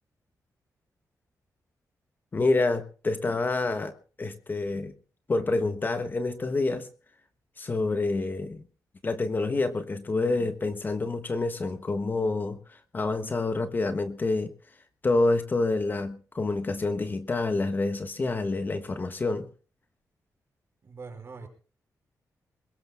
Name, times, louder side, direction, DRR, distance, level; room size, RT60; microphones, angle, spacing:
voice 1, 2.3-3.9 4.2-4.9 5.3-6.9 7.6-8.6 9.0-14.5 15.0-19.4, left 3 dB, 30° left, 1.3 m, -27 dB
voice 2, 20.8-21.5, right 4 dB, 40° right, 5.4 m, -42 dB
23.0 x 21.0 x 2.3 m
wide cardioid pair, 125°, 6 cm